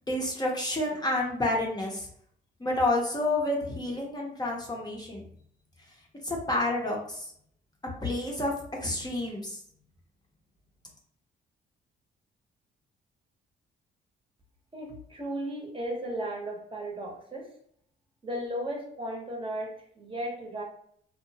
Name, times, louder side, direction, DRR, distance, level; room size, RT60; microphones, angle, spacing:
voice 1, 0.1-2.1 2.6-5.2 6.2-7.3 8.0-8.5 8.8-9.6, left 2 dB, 20° left, -2 dB, 0.6 m, -29 dB
voice 2, 14.7-17.5 18.2-20.6, right 1 dB, 25° right, -1 dB, 0.8 m, -35 dB
2.7 x 2.1 x 2.7 m, 0.65 s
cardioid pair, 90°, 20 cm